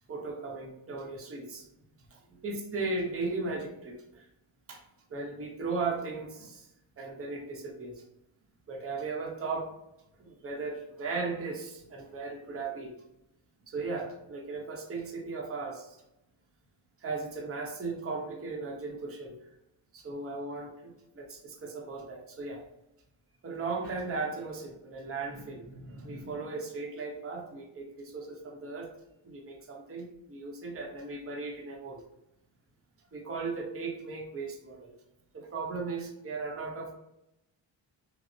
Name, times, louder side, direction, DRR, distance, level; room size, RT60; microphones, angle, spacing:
voice 1, 0.1-1.7 2.1-4.3 4.7-4.8 5.1-6.7 7.0-8.0 8.7-9.7 10.2-12.9 13.7-16.0 17.0-19.4 19.9-22.6 23.4-28.9 29.2-32.0 33.1-34.9 35.3-36.9, right 3 dB, 30° right, 0 dB, 0.8 m, -37 dB
6.0 x 2.0 x 2.6 m, 0.87 s
wide cardioid pair, 140°, 48 cm